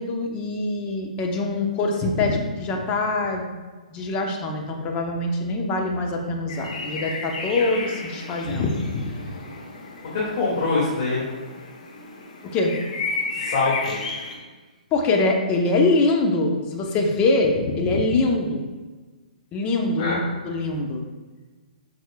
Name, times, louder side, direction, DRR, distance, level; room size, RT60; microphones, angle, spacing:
voice 1, 0.0-3.5 3.9-9.3 12.4-12.8 14.9-18.7 19.5-21.0, left 2 dB, 25° left, 1 dB, 1.0 m, -24 dB
sound 1, 6.5-14.4, left 3 dB, 65° left, 1.6 m, -33 dB
voice 2, 10.1-11.2 13.3-14.0 20.0-20.2, left 3 dB, 45° left, -7 dB, 2.3 m, -24 dB
10.0 x 6.1 x 2.4 m, 1.3 s
hypercardioid pair, 130°, 4 cm